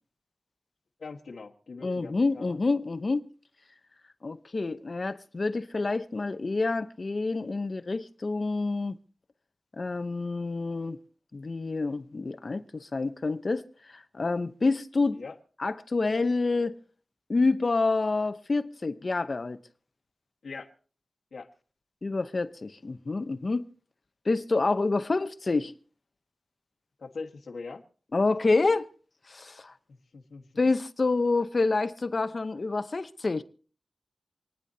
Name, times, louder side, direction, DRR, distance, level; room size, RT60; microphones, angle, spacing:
voice 1, 1.0-2.6 15.1-15.3 20.4-20.7 21.3-21.5 27.0-27.8 29.9-30.5, left 4 dB, 85° left, 1.4 m, -42 dB
voice 2, 1.8-3.2 4.2-9.0 9.7-11.0 11.3-13.6 13.9-15.2 15.6-16.8 17.3-19.6 22.0-23.7 24.3-25.7 28.1-28.9 29.3-29.7 30.6-33.4, left 3 dB, 50° left, 0.7 m, -28 dB
28.0 x 10.0 x 2.7 m
wide cardioid pair, 80°, 0 cm